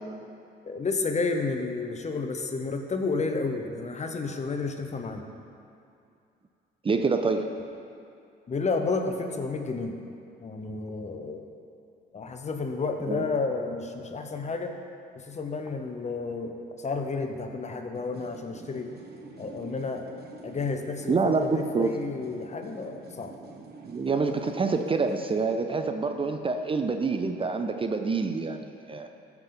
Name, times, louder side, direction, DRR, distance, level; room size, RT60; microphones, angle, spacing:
voice 1, 0.6-5.2 8.5-10.0 10.4-11.4 12.1-14.7 15.1-18.9 19.4-20.1 20.4-23.3, left 4 dB, 35° left, 5 dB, 0.9 m, -31 dB
voice 2, 6.8-7.5 13.1-13.3 21.1-21.9 23.8-29.1, right 4 dB, 25° right, 6 dB, 0.5 m, -27 dB
sound 1, 17.9-25.4, right 4 dB, 55° right, 1.0 m, -47 dB
14.5 x 6.0 x 3.9 m, 2.5 s
cardioid pair, 90°, 20 cm